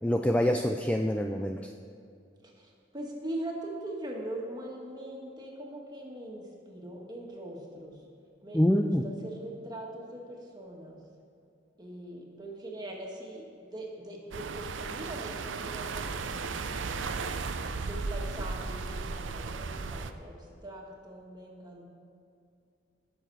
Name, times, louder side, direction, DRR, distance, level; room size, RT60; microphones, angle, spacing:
voice 1, 0.0-1.7 8.5-9.0, left 1 dB, 5° left, 4 dB, 0.3 m, -26 dB
voice 2, 2.4-8.0 8.4-11.0 11.8-17.4 17.8-20.4 20.6-21.8, right 1 dB, 20° right, -1 dB, 1.7 m, -42 dB
sound 1, 14.3-20.1, right 4 dB, 85° right, 0.6 m, -35 dB
18.5 x 6.9 x 4.7 m, 2.5 s
head